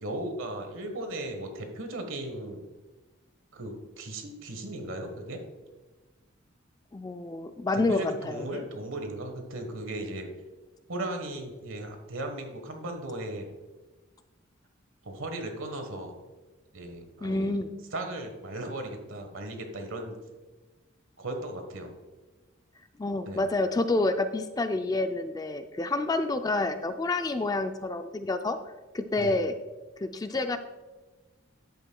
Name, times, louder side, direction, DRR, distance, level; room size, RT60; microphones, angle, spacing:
voice 1, 0.0-2.6 3.5-5.4 7.7-10.3 10.9-13.5 15.0-16.2 16.7-17.6 17.9-20.2 21.2-21.9 23.2-23.4 29.2-29.3, right 1 dB, 80° right, 5 dB, 1.3 m, -37 dB
voice 2, 6.9-8.6 17.2-17.7 23.0-28.6 28.9-29.5 30.0-30.6, left 2 dB, 20° left, 8 dB, 0.3 m, -28 dB
10.5 x 8.1 x 2.3 m, 1.2 s
head